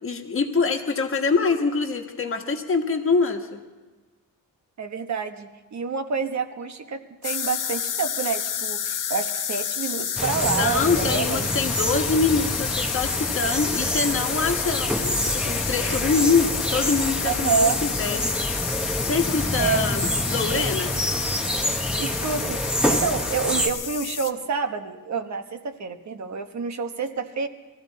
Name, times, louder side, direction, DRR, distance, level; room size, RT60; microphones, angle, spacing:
voice 1, 0.0-3.6 10.6-18.3 19.1-20.9, left 4 dB, 35° left, 3 dB, 1.5 m, -24 dB
voice 2, 4.8-11.5 17.2-17.8 19.6-19.9 22.0-27.5, right 5 dB, 50° right, 7 dB, 1.1 m, -28 dB
sound 1, 7.2-24.3, left 8 dB, 60° left, 0.8 m, -30 dB
sound 2, 10.2-23.7, equal, 5° right, 1.1 m, -27 dB
22.0 x 14.5 x 4.2 m, 1.2 s
wide cardioid pair, 135°, 35 cm